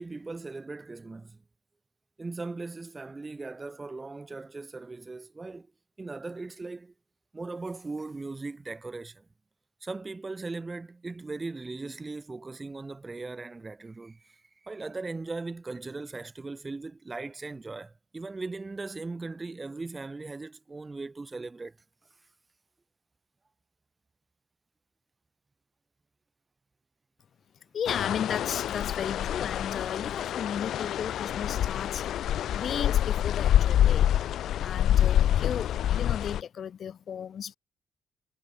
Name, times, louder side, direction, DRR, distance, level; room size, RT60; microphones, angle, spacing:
voice 1, 0.0-1.4 2.2-5.7 6.0-6.9 7.3-9.3 9.8-21.8, right 3 dB, 25° right, 3.5 m, -38 dB
voice 2, 27.7-32.1 32.5-34.1 34.6-37.6, left 8 dB, 55° left, 4.4 m, -35 dB
sound 1, 27.9-36.4, left 11 dB, 75° left, 0.4 m, -26 dB
cardioid pair, 95°, 0 cm